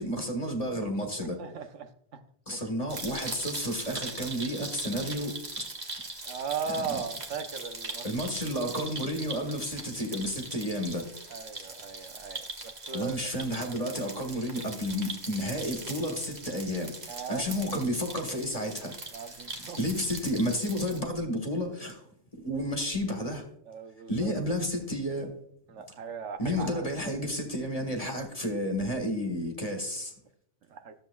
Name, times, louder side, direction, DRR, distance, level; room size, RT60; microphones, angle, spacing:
voice 1, 0.0-1.4 2.5-5.6 6.8-7.0 8.0-11.1 12.9-19.0 19.8-22.1 22.4-23.5 24.1-25.3 26.4-30.1, equal, 30° left, 4 dB, 1.4 m, -31 dB
voice 2, 1.4-2.2 2.5-2.6 6.2-8.1 11.3-13.3 17.1-17.5 19.1-19.8 23.6-24.3 25.7-26.8 30.7-30.9, right 6 dB, 85° right, 8 dB, 1.1 m, -38 dB
sound 1, 2.9-21.0, right 3 dB, 40° right, 1.2 m, -41 dB
13.5 x 7.5 x 2.3 m, 0.69 s
omnidirectional pair, 1.2 m